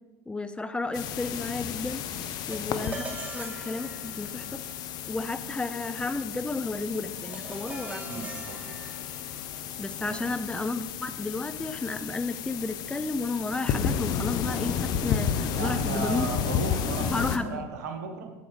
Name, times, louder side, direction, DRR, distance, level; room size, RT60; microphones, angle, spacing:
voice 1, 0.3-2.0 2.5-4.6 5.1-8.3 9.8-16.3 17.1-17.6, left 3 dB, 10° left, 11 dB, 0.6 m, -32 dB
sound 1, 0.9-17.4, left 8 dB, 50° left, 0.8 m, -32 dB
sound 2, 2.3-11.8, right 2 dB, 15° right, 2.0 m, -45 dB
voice 2, 8.0-8.8 10.0-10.4 15.5-18.3, right 5 dB, 80° right, 4 dB, 1.4 m, -36 dB
8.6 x 7.0 x 5.1 m, 1.1 s
hypercardioid pair, 85°, 9 cm